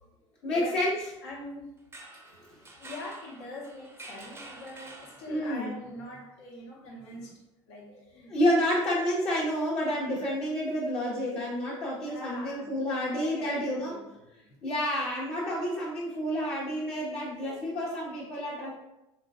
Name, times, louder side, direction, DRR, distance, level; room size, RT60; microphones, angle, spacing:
voice 1, 0.4-1.0 5.3-5.7 8.3-14.0 14.6-18.7, equal, 45° left, -6 dB, 1.0 m, -29 dB
voice 2, 1.2-1.8 2.8-7.3 7.7-8.3 12.1-12.7 13.1-14.6, left 1 dB, 65° left, -5 dB, 1.2 m, -43 dB
sound 1, 1.8-5.7, right 2 dB, 15° right, 0.6 m, -48 dB
3.8 x 2.9 x 2.4 m, 0.90 s
figure-of-eight pair, 65°, 15 cm